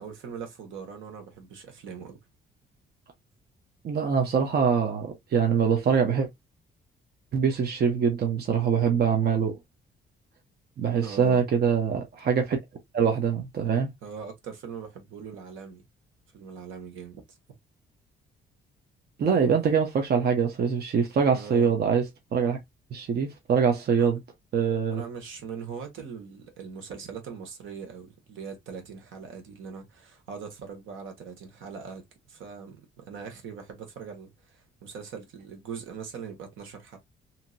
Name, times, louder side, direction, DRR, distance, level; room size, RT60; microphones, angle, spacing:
voice 1, 0.0-2.2 11.0-11.4 14.0-15.8 16.3-17.4 21.3-21.7 24.0-24.1 24.9-37.0, right 6 dB, 80° right, 1.3 m, -41 dB
voice 2, 3.8-6.3 7.3-9.6 10.8-12.6 12.9-13.9 19.2-22.0 22.3-22.6 22.9-24.2 24.5-25.0, right 6 dB, 55° right, 0.9 m, -24 dB
2.9 x 2.8 x 2.6 m
cardioid pair, 90°, 20 cm